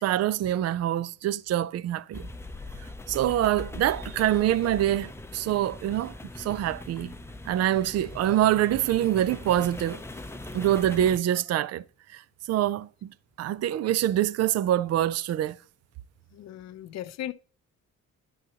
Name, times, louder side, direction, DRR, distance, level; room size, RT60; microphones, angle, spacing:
voice 1, 0.0-2.3 3.1-7.1 7.5-10.0 10.5-11.8 12.1-12.2 12.5-13.1 13.4-15.6, right 12 dB, 55° right, 0.5 m, -25 dB
sound 1, 2.1-11.2, left 2 dB, 10° left, 0.5 m, -41 dB
voice 2, 16.3-17.3, left 12 dB, 60° left, 0.6 m, -37 dB
10.0 x 6.4 x 2.8 m
cardioid pair, 90°, 30 cm